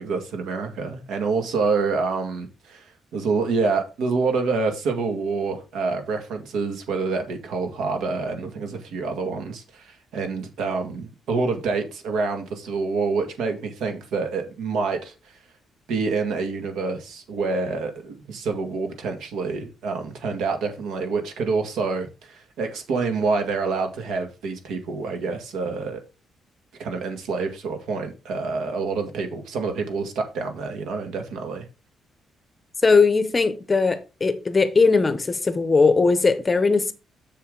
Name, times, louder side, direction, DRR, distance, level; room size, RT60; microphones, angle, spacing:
voice 1, 0.0-2.8 3.1-15.1 15.9-26.0 26.8-31.6, right 4 dB, 80° right, 1.9 m, -27 dB
voice 2, 32.8-36.9, left 4 dB, 20° left, 0.7 m, -19 dB
7.2 x 6.9 x 3.8 m
cardioid pair, 175°, 0 cm